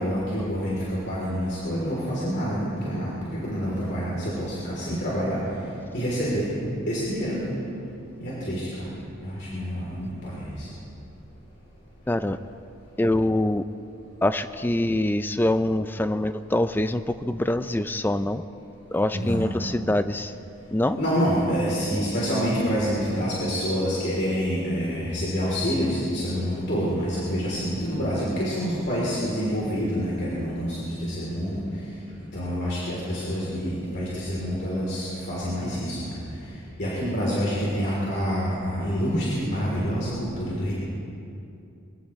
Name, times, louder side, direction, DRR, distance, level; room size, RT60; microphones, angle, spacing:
voice 1, 0.0-5.4 5.9-6.5 6.9-7.4 8.2-8.7 9.2-10.7 19.1-19.4 21.0-31.6 32.3-36.1 36.8-40.7, equal, 50° left, -7 dB, 3.3 m, -27 dB
voice 2, 12.1-12.4 13.0-13.6 14.2-18.4 18.9-20.3 20.7-21.0, left 1 dB, 10° left, 11 dB, 0.3 m, -24 dB
23.5 x 15.5 x 3.2 m, 2.7 s
head